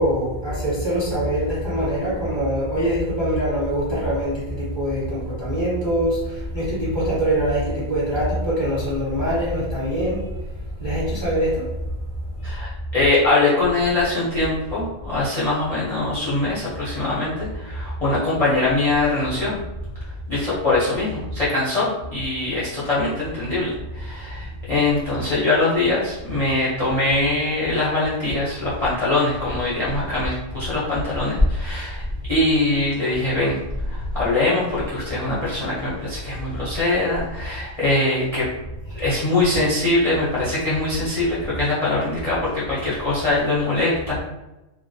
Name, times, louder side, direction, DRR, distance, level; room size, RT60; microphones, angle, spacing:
voice 1, 0.0-10.2 10.8-11.7 38.9-39.0, equal, 30° right, -9 dB, 0.5 m, -23 dB
voice 2, 12.4-19.6 20.3-33.6 33.9-38.4 38.9-44.2, left 2 dB, 50° left, -10 dB, 0.4 m, -22 dB
2.4 x 2.1 x 2.5 m, 1.0 s
omnidirectional pair, 1.4 m